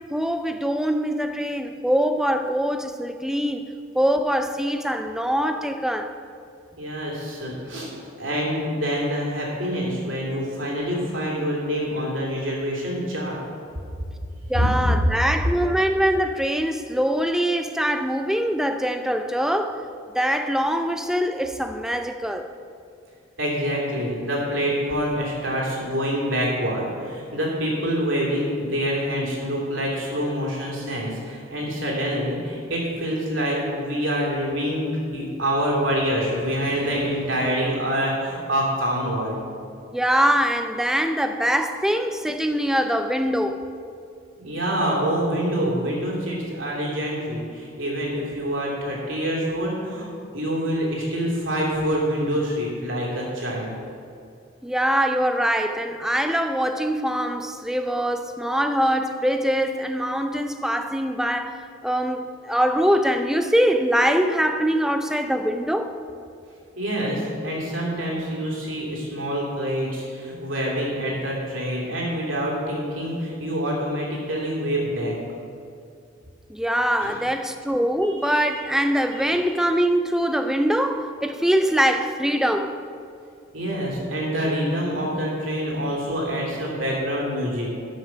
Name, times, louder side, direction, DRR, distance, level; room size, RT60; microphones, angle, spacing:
voice 1, 0.1-3.7 3.9-6.1 14.5-19.8 20.1-22.5 39.9-43.6 54.6-61.6 61.8-65.9 76.5-82.7, equal, 5° right, 0.4 m, -23 dB
voice 2, 6.8-7.9 8.2-13.4 14.5-14.9 23.4-34.8 35.1-39.4 44.4-53.7 66.7-75.1 77.0-77.2 78.0-78.5 79.2-79.5 83.5-87.7, equal, 85° right, 2.9 m, -26 dB
12.5 x 5.8 x 5.7 m
head